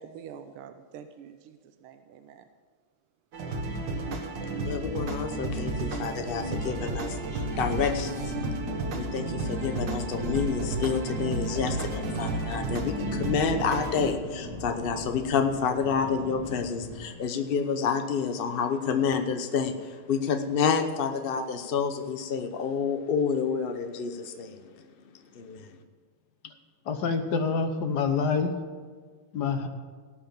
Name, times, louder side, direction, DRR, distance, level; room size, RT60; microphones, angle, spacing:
voice 1, 0.0-2.4, right 7 dB, 80° right, 8 dB, 1.6 m, -46 dB
sound 1, 3.3-14.1, right 2 dB, 60° right, 1.9 m, -32 dB
voice 2, 4.6-8.5 9.0-24.8 25.3-25.8, left 6 dB, 85° left, 6 dB, 0.5 m, -29 dB
sound 2, 5.1-17.1, left 1 dB, 35° left, 2.3 m, -39 dB
voice 3, 26.9-28.5 29.3-29.7, left 5 dB, 60° left, 8 dB, 1.4 m, -26 dB
17.5 x 5.9 x 7.0 m, 1.6 s
omnidirectional pair, 2.4 m